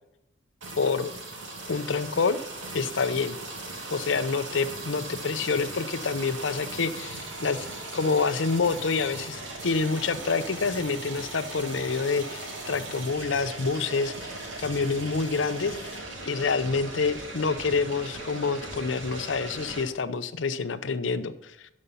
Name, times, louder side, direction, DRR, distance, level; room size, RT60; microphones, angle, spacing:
sound 1, 0.6-19.8, right 2 dB, 90° right, 2.8 m, -38 dB
voice 1, 0.8-1.1 1.7-2.4 2.7-3.4 3.9-7.7 7.9-21.7, left 4 dB, 80° left, 13 dB, 0.7 m, -27 dB
12.5 x 5.3 x 5.6 m, 0.87 s
head